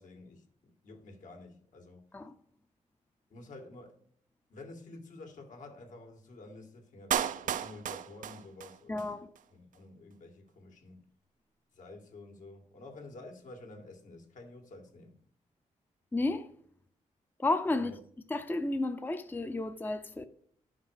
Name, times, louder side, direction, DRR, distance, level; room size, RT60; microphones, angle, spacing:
voice 1, 0.0-2.0 3.3-4.1 4.5-9.1 9.5-11.1 11.7-15.2 17.8-18.0, left 2 dB, 70° left, 2.3 m, -50 dB
Clapping, 7.1-9.1 9.4-9.5, right 9 dB, 80° right, 0.6 m, -34 dB
voice 2, 8.9-9.3 16.1-16.5 17.4-17.9 18.3-20.2, left 2 dB, 15° left, 0.6 m, -32 dB
10.5 x 5.9 x 4.9 m
cardioid pair, 90°, 13 cm